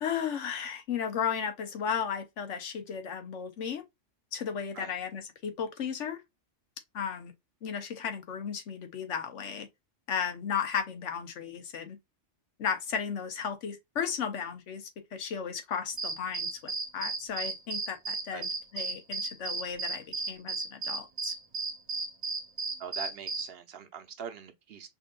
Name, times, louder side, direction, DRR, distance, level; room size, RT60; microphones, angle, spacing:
voice 1, 0.0-3.8 4.3-6.2 6.9-7.3 7.6-9.7 10.1-12.0 12.6-21.3, left 7 dB, 75° left, 1.1 m, -35 dB
sound 1, 16.0-23.5, right 3 dB, 35° right, 0.9 m, -34 dB
voice 2, 22.8-24.9, right 7 dB, 60° right, 0.8 m, -42 dB
5.4 x 2.6 x 2.3 m
omnidirectional pair, 1.3 m